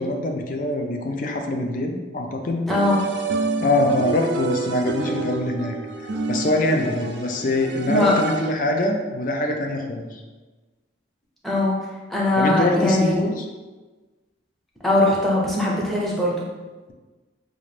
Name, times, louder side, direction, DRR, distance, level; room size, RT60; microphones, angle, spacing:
voice 1, 0.0-2.6 3.6-5.8 6.3-10.2 12.4-13.5, left 1 dB, 45° left, 3 dB, 0.4 m, -23 dB
voice 2, 2.7-3.0 7.9-8.1 11.4-11.8 12.1-13.2 14.8-16.4, left 1 dB, ahead, -5 dB, 0.6 m, -20 dB
sound 1, 2.7-8.8, right 3 dB, 65° right, 0.4 m, -29 dB
3.8 x 2.5 x 3.2 m, 1.3 s
head